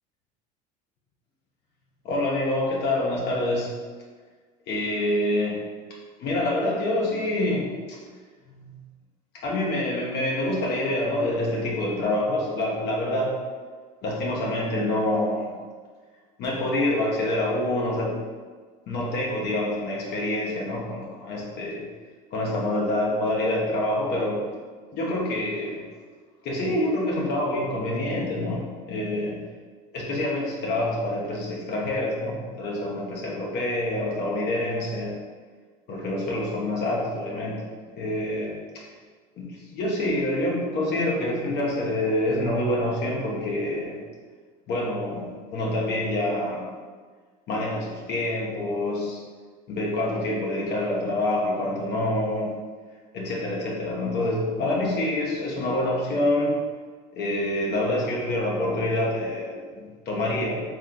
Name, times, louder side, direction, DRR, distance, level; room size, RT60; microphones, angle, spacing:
voice 1, 2.0-3.7 4.7-5.6 6.2-8.0 8.5-8.8 9.4-13.4 14.0-15.6 16.4-18.2 18.9-21.8 22.3-24.4 24.9-25.8 26.4-29.4 29.9-35.1 35.9-37.6 38.0-38.5 39.4-44.0 44.7-46.6 47.5-49.2 49.7-52.5 53.1-56.5 57.1-60.6, left 1 dB, 55° left, -3 dB, 1.0 m, -26 dB
3.1 x 3.1 x 3.9 m, 1.5 s
supercardioid pair, 90°, 20 cm